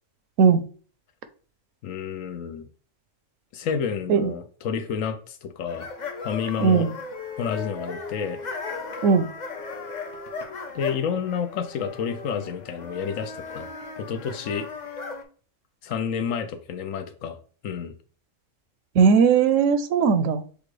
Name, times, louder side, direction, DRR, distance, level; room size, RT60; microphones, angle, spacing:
voice 1, 1.8-2.6 3.5-5.9 6.2-6.9 7.4-8.4 10.7-13.7 14.1-14.7 15.8-17.4 17.6-17.9, left 7 dB, 90° left, 9 dB, 1.1 m, -29 dB
sound 1, 5.7-15.2, left 4 dB, 45° left, 0.7 m, -36 dB
voice 2, 6.6-6.9 9.0-9.3 19.0-20.4, right 6 dB, 80° right, 11 dB, 1.0 m, -18 dB
6.6 x 2.4 x 3.1 m, 0.42 s
omnidirectional pair, 1.3 m